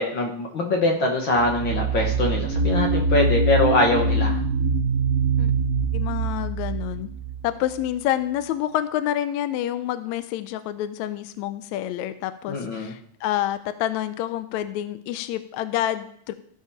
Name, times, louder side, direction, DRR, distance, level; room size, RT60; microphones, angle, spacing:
voice 1, 0.0-4.4 12.5-12.9, left 2 dB, 55° left, 1 dB, 1.5 m, -23 dB
sound 1, 1.3-7.9, right 3 dB, 75° right, 2.5 m, -24 dB
voice 2, 5.9-7.1 7.4-16.3, left 12 dB, 80° left, 11 dB, 1.7 m, -28 dB
15.0 x 5.1 x 5.6 m, 0.64 s
omnidirectional pair, 3.7 m